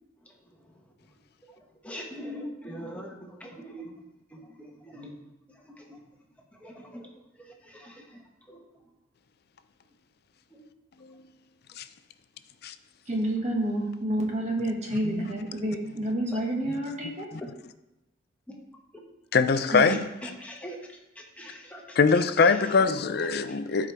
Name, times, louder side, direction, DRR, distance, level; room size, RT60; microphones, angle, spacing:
voice 1, 1.8-3.1 3.4-3.8 4.9-5.1 6.6-6.8 8.5-8.6 16.3-16.4 20.4-20.8 21.4-21.8, equal, 5° left, 1.1 m, -40 dB
voice 2, 13.1-17.3 19.7-20.0, right 1 dB, 35° right, 1.6 m, -29 dB
voice 3, 19.3-20.1 22.0-23.9, left 5 dB, 50° left, 0.4 m, -23 dB
12.0 x 4.9 x 3.4 m
head